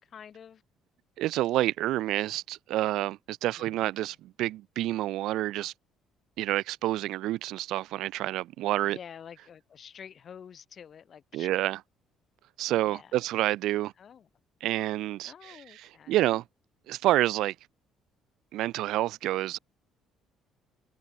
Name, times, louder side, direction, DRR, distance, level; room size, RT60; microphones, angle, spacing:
voice 1, 0.1-0.6 3.6-3.7 8.8-11.5 12.7-13.2 14.0-14.3 15.2-16.4, left 8 dB, 35° left, 7.1 m, -48 dB
voice 2, 1.2-5.7 6.4-9.0 11.3-11.8 12.6-13.9 14.6-16.4 16.9-17.5 18.5-19.6, right 15 dB, 70° right, 0.8 m, -28 dB
cardioid pair, 170°, 0 cm